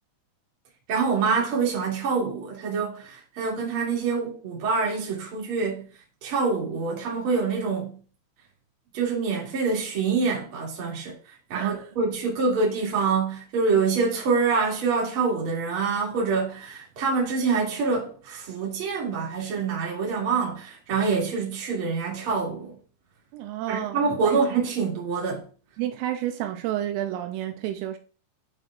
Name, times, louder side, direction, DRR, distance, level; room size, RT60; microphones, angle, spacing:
voice 1, 0.9-5.9 6.2-8.0 8.9-22.7 23.7-25.4, right 4 dB, 40° right, 2.3 m, -26 dB
voice 2, 11.5-11.9 23.3-24.6 25.8-28.0, right 12 dB, 85° right, 3.1 m, -31 dB
10.0 x 6.3 x 2.4 m
omnidirectional pair, 5.8 m